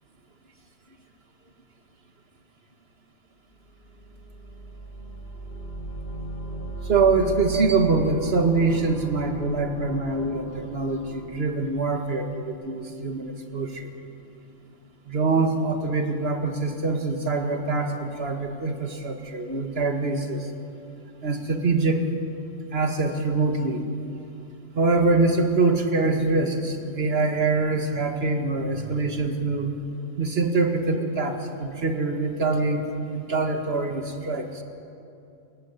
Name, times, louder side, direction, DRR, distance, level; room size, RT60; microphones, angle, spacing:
sound 1, 3.6-12.5, right 1 dB, 45° left, 2.6 m, -37 dB
voice 1, 6.8-13.9 15.1-20.5 21.2-22.0 22.7-23.9 24.8-29.7 30.2-34.6, right 3 dB, 50° right, 5 dB, 2.2 m, -24 dB
28.5 x 15.0 x 9.9 m, 2.7 s
omnidirectional pair, 1.4 m